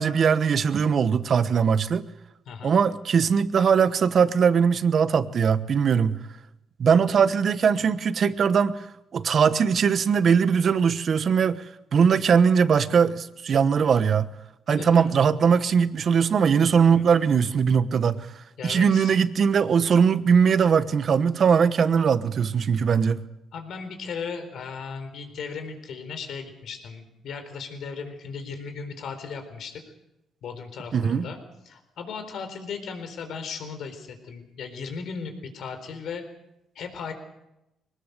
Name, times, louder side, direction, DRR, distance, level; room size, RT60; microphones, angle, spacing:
voice 1, 0.0-2.1 2.6-6.2 6.8-8.8 9.1-11.6 11.9-14.3 14.7-18.3 18.6-23.2 30.9-31.3, right 6 dB, 55° right, 13 dB, 1.1 m, -20 dB
voice 2, 14.7-15.2 16.8-17.0 18.6-19.1 23.5-29.8 30.4-31.4 31.7-36.3 36.7-37.1, left 5 dB, 70° left, 7 dB, 4.0 m, -36 dB
22.5 x 19.5 x 6.8 m, 0.90 s
cardioid pair, 90°, 0 cm